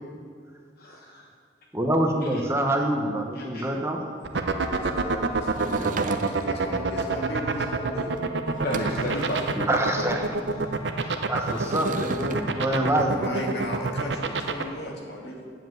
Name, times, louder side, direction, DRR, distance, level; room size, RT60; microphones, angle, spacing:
voice 1, 0.8-1.2 2.3-2.4 3.3-3.7 8.6-10.4 11.5-11.6, equal, 55° left, -1 dB, 1.1 m, -33 dB
voice 2, 1.7-4.0 9.5-10.3 11.3-13.6, right 1 dB, 15° right, 2 dB, 1.0 m, -26 dB
sound 1, 4.2-14.6, right 3 dB, 85° right, 0.7 m, -25 dB
voice 3, 4.6-8.2 13.1-15.4, equal, 75° left, 0 dB, 2.2 m, -37 dB
Sliding door / Wood, 5.4-6.7 8.2-8.3 8.5-9.6 11.4-12.4, right 3 dB, 45° right, 0.6 m, -36 dB
9.9 x 7.7 x 7.9 m, 2.1 s
head